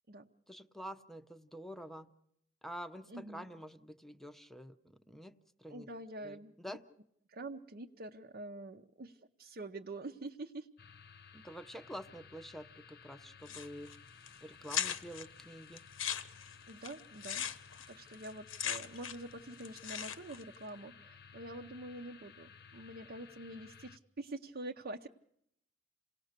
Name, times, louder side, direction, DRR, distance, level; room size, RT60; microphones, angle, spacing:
voice 1, 0.5-2.1 2.6-5.3 5.6-5.9 6.2-6.8 11.3-13.9 14.4-15.8, equal, ahead, 9 dB, 0.8 m, -48 dB
voice 2, 3.1-3.5 5.7-6.8 7.3-10.7 16.7-17.5 17.9-25.1, right 2 dB, 50° right, 2 dB, 0.8 m, -46 dB
sound 1, 10.8-24.0, left 6 dB, 55° left, 1.0 m, -57 dB
sound 2, 13.5-13.9 14.3-14.4 14.7-15.2 15.8-19.3 19.6-20.4, left 8 dB, 85° left, 1.2 m, -38 dB
28.5 x 18.5 x 6.7 m, 0.75 s
head